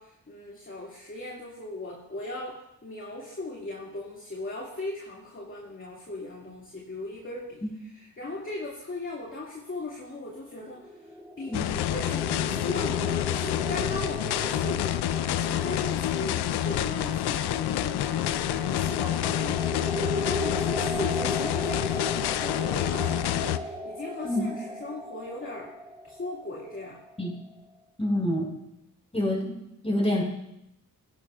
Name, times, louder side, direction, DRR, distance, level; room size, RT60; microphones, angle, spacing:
voice 1, 0.0-25.7 26.0-27.0, left 2 dB, 35° left, -4 dB, 2.2 m, -38 dB
sound 1, 10.6-27.4, left 1 dB, 5° right, 1.2 m, -36 dB
sound 2, 11.5-23.6, left 12 dB, 85° left, 0.5 m, -28 dB
voice 2, 28.0-28.5 29.1-29.5 29.8-30.2, left 1 dB, 15° left, -1 dB, 4.8 m, -26 dB
17.0 x 11.0 x 2.4 m, 0.82 s
cardioid pair, 60°, 38 cm